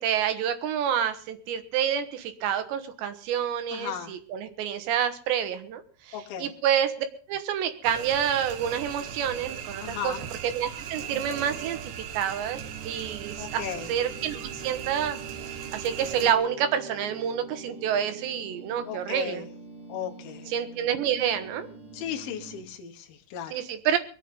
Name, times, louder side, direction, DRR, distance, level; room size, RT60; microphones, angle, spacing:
voice 1, 0.0-10.2 10.4-11.8 12.1-12.6 12.9-15.2 15.7-19.5 20.5-21.7 23.5-24.0, right 9 dB, 85° right, 9 dB, 3.6 m, -28 dB
voice 2, 3.7-4.1 6.1-6.5 9.8-10.2 13.4-13.9 18.9-19.5 19.9-20.5 21.9-23.5, left 9 dB, 65° left, 1 dB, 3.0 m, -35 dB
sound 1, 7.8-16.4, right 9 dB, 70° right, 2.9 m, -38 dB
sound 2, 12.5-22.6, right 5 dB, 30° right, 3.9 m, -44 dB
22.0 x 8.6 x 5.4 m, 0.41 s
omnidirectional pair, 5.0 m